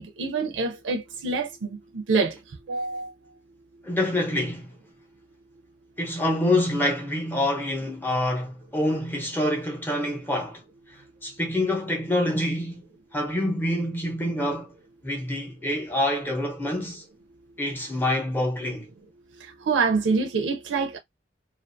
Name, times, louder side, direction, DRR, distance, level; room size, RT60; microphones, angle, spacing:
voice 1, 0.0-2.4 2.7-3.1 19.7-21.0, right 4 dB, 90° right, 0.4 m, -26 dB
voice 2, 3.8-4.7 6.0-10.6 11.2-12.9 13.1-14.7 15.0-17.0 17.6-18.9, left 1 dB, 10° left, 0.6 m, -26 dB
2.3 x 2.2 x 2.5 m
head